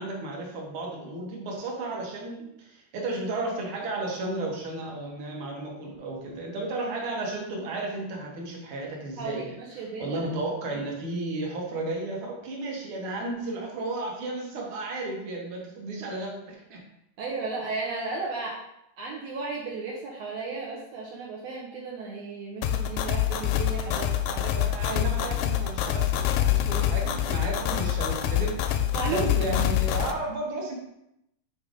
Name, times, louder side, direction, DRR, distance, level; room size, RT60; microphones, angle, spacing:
voice 1, 0.0-9.4 10.0-16.9 24.5-28.8 29.1-30.7, right 2 dB, 65° right, -1 dB, 1.3 m, -33 dB
voice 2, 9.2-10.2 10.7-10.8 17.2-18.6 19.0-24.7 27.6-27.8 28.9-29.5, right 3 dB, 85° right, -4 dB, 1.4 m, -34 dB
sound 1, 22.6-30.1, left 10 dB, 80° left, 2.0 m, -26 dB
5.8 x 3.8 x 5.1 m, 0.82 s
omnidirectional pair, 4.2 m